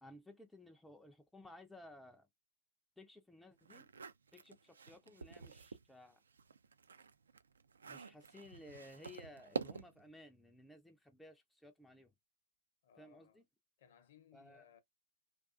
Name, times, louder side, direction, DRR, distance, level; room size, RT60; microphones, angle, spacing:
voice 1, 0.0-2.3 3.0-3.9 4.3-6.2 7.9-12.1 13.0-13.4 14.3-14.6, left 1 dB, 5° left, 0.4 m, -57 dB
sound 1, 3.6-5.9 6.3-10.1, right 5 dB, 80° right, 0.3 m, -47 dB
voice 2, 12.8-13.4 13.8-14.8, left 9 dB, 55° left, 0.7 m, -64 dB
2.3 x 2.3 x 2.4 m
hypercardioid pair, 125°, 0 cm